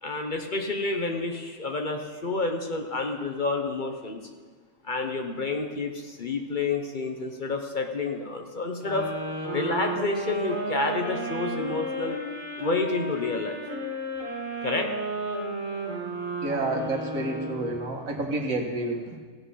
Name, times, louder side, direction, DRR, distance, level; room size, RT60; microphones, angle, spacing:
voice 1, 0.0-4.2 4.8-9.1 9.5-12.2 12.6-13.6 14.6-14.9, left 3 dB, 40° left, 4 dB, 1.0 m, -29 dB
sound 1, 8.8-18.0, right 1 dB, 20° right, 4.7 m, -33 dB
voice 2, 16.4-19.2, right 2 dB, 85° right, 2 dB, 1.9 m, -29 dB
16.0 x 7.9 x 5.7 m, 1.5 s
omnidirectional pair, 1.4 m